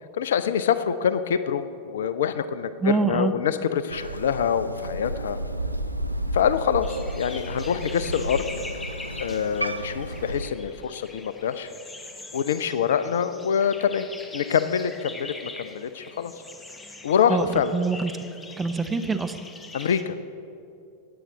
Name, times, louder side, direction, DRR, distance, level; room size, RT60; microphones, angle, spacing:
voice 1, 0.2-5.4 6.3-8.4 9.2-11.7 12.3-14.1 14.3-16.3 17.0-17.7 19.7-20.2, left 8 dB, 60° left, 13 dB, 0.5 m, -25 dB
voice 2, 2.8-3.3 17.3-18.1 18.6-19.4, right 4 dB, 15° right, 8 dB, 0.6 m, -25 dB
Crow, 3.9-10.5, right 1 dB, 90° right, 0.5 m, -32 dB
sound 1, 6.8-20.0, left 3 dB, 15° left, 0.9 m, -42 dB
18.0 x 8.7 x 4.0 m, 2.6 s
figure-of-eight pair, 90°, 0 cm